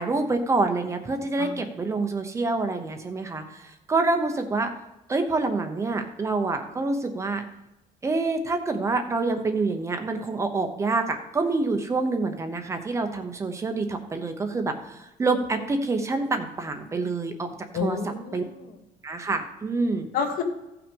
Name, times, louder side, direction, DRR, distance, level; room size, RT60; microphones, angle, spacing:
voice 1, 0.0-4.7 5.1-7.4 8.0-17.5 17.8-18.0 18.3-18.4 19.0-20.1, right 3 dB, 20° right, 6 dB, 0.9 m, -27 dB
voice 2, 17.7-18.8 20.1-20.4, left 5 dB, 70° left, 5 dB, 1.7 m, -30 dB
15.5 x 5.9 x 5.3 m, 0.94 s
cardioid pair, 175°, 15 cm